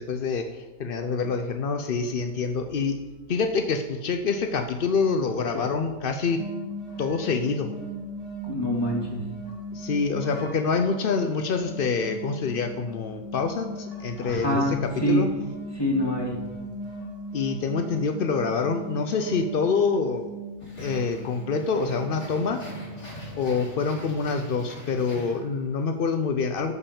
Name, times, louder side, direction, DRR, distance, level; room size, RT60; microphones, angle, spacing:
voice 1, 0.0-3.0 3.3-6.4 7.0-7.7 9.7-14.6 15.1-15.3 17.3-20.3 20.8-22.6 23.4-26.7, left 5 dB, 65° left, 6 dB, 0.5 m, -26 dB
sound 1, 6.4-24.0, right 1 dB, 20° right, 2.9 m, -38 dB
voice 2, 8.4-9.2 14.1-15.3 15.7-16.4, equal, 15° left, -4 dB, 2.8 m, -26 dB
sound 2, 20.6-25.8, left 1 dB, 45° left, 3.6 m, -42 dB
12.5 x 5.6 x 7.0 m, 1.2 s
omnidirectional pair, 1.7 m